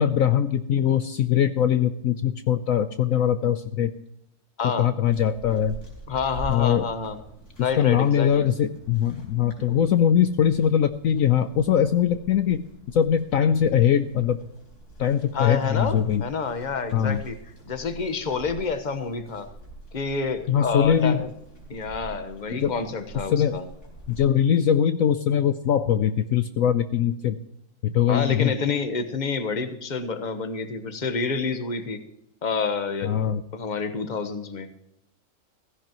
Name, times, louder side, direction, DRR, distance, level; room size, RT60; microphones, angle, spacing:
voice 1, 0.0-3.9 4.8-5.7 6.5-6.9 7.8-12.6 12.9-14.4 15.0-16.2 16.9-17.2 20.5-21.2 22.5-22.7 23.3-23.6 24.1-27.4 27.8-28.5 33.0-33.4, left 9 dB, 65° left, 9 dB, 1.0 m, -22 dB
voice 2, 4.6-4.9 6.1-7.2 7.6-8.5 9.7-9.8 15.3-17.4 17.7-19.5 19.9-21.3 21.7-23.7 28.1-32.0 32.4-33.1 33.5-34.7, left 5 dB, 30° left, 8 dB, 1.2 m, -28 dB
sound 1, 5.0-24.3, right 1 dB, 90° left, 4.8 m, -45 dB
16.5 x 16.0 x 3.0 m, 0.79 s
omnidirectional pair, 1.6 m